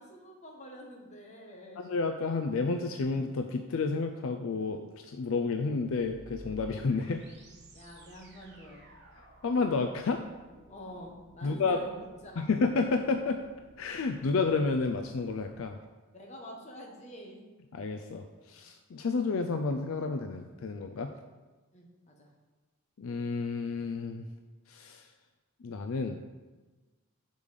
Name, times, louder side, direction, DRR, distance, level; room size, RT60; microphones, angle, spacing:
voice 1, 0.0-1.8 7.7-8.9 10.7-12.5 16.1-17.5 21.7-22.3, equal, 30° left, -1 dB, 1.2 m, -47 dB
voice 2, 1.8-7.2 9.4-10.2 11.4-11.8 12.4-13.4 13.8-15.8 17.7-21.1 23.0-24.3 24.7-25.1 25.6-26.2, left 4 dB, 65° left, 6 dB, 0.4 m, -30 dB
sound 1, 5.6-15.6, right 1 dB, 50° right, 1.3 m, -55 dB
5.3 x 5.1 x 6.5 m, 1.3 s
head